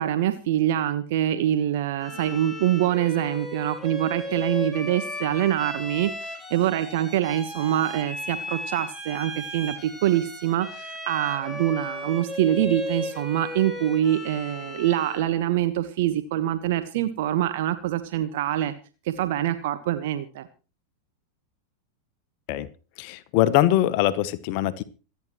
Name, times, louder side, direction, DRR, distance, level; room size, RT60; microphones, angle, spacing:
voice 1, 0.0-18.7 19.0-20.5, right 12 dB, 50° right, 11 dB, 1.3 m, -25 dB
Bowed string instrument, 2.0-15.4, left 2 dB, ahead, 5.3 m, -36 dB
voice 2, 23.0-24.8, left 13 dB, 45° left, 14 dB, 1.0 m, -22 dB
26.5 x 9.7 x 3.1 m, 0.37 s
figure-of-eight pair, 90°, 0 cm